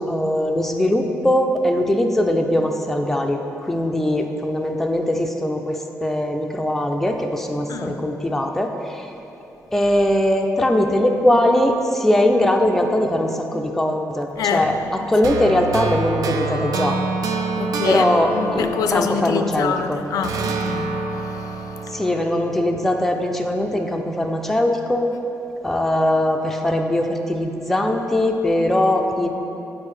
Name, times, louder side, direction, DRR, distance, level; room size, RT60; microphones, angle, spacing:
voice 1, 0.0-3.4 3.6-9.1 9.7-14.7 15.1-17.0 17.8-20.0 21.9-25.1 25.6-29.3, left 1 dB, 5° left, 0.4 m, -20 dB
voice 2, 14.4-15.1 17.6-21.8, left 6 dB, 80° left, 0.4 m, -26 dB
sound 1, 15.2-19.8 20.2-23.3, right 4 dB, 80° right, 0.4 m, -27 dB
9.4 x 4.5 x 3.2 m
cardioid pair, 140°, 6 cm